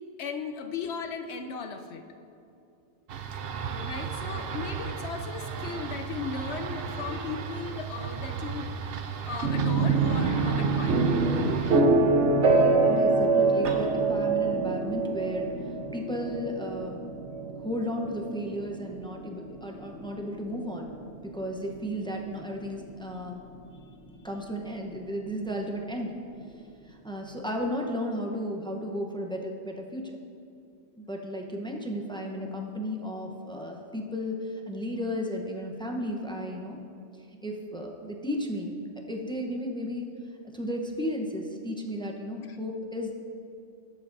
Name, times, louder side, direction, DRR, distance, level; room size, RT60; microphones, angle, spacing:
voice 1, 0.2-2.0 3.8-8.7 9.2-11.1 42.5-42.6, left 5 dB, 75° left, 6 dB, 1.0 m, -37 dB
sound 1, 3.1-11.8, right 6 dB, 65° right, 0.8 m, -35 dB
sound 2, 9.4-23.2, right 3 dB, 80° right, 1.3 m, -26 dB
voice 2, 12.9-15.5 15.9-17.0 17.6-20.9 21.2-23.4 24.2-26.2 26.8-30.2 31.0-36.8 37.4-38.7 39.1-40.1 40.4-43.2, equal, 5° left, 1 dB, 0.8 m, -34 dB
20.0 x 7.3 x 2.6 m, 2.7 s
omnidirectional pair, 1.1 m